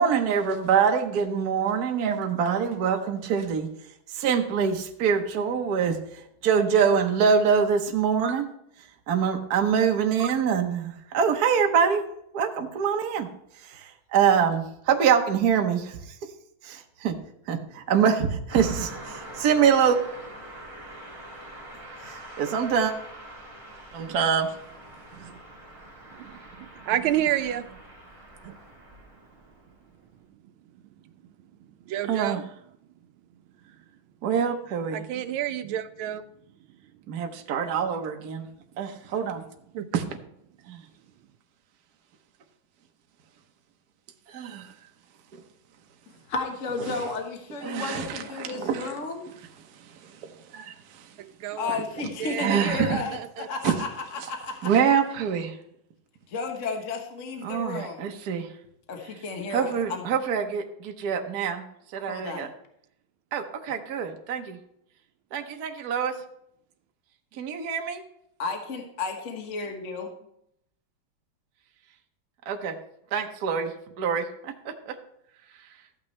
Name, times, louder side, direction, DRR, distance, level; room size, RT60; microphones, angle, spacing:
voice 1, 0.0-3.7 4.1-8.5 8.8-12.0 12.3-13.3 13.5-16.3 16.6-17.2 17.5-20.0 22.0-22.9 23.9-24.5 32.1-32.4 34.2-35.0 37.1-38.5 38.8-39.4 39.9-40.0 40.7-40.8 44.3-44.7 45.3-45.4 46.9-47.1 47.6-48.9 49.7-51.2 52.0-52.1 52.4-53.0 53.6-53.8 54.6-55.6 57.4-58.5 59.5-61.6 61.9-62.5 63.3-64.6 65.3-66.1 67.3-68.0 72.5-72.8 73.1-75.0, right 7 dB, 55° right, 4 dB, 1.3 m, -25 dB
Car passing by, 18.5-29.9, right 1 dB, 15° right, 2.1 m, -44 dB
voice 2, 26.1-27.8 28.4-28.5 31.9-32.4 34.9-36.2 39.7-39.9 51.2-51.8 52.2-53.5, right 11 dB, 90° right, 9 dB, 1.4 m, -30 dB
voice 3, 46.3-49.3 51.6-54.7 56.3-58.0 58.9-60.0 62.0-62.5 68.4-70.1, left 4 dB, 45° left, 3 dB, 1.4 m, -33 dB
14.0 x 8.9 x 3.2 m, 0.75 s
omnidirectional pair, 2.2 m